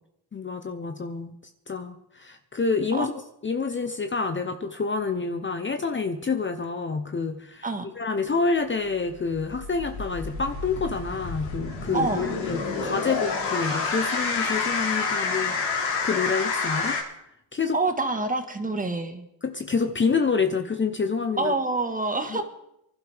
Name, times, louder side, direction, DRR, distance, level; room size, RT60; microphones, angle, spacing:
voice 1, 0.3-1.3 1.7-3.1 3.4-7.7 8.0-17.0 17.5-17.8 19.4-21.5 22.3-22.4, left 4 dB, 25° left, 7 dB, 0.9 m, -28 dB
sound 1, 9.1-17.0, left 4 dB, 90° left, 4.5 m, -28 dB
voice 2, 11.9-12.3 17.7-19.2 21.4-22.4, right 3 dB, 20° right, 6 dB, 1.7 m, -27 dB
24.5 x 12.0 x 3.6 m, 0.79 s
cardioid pair, 90°, 45 cm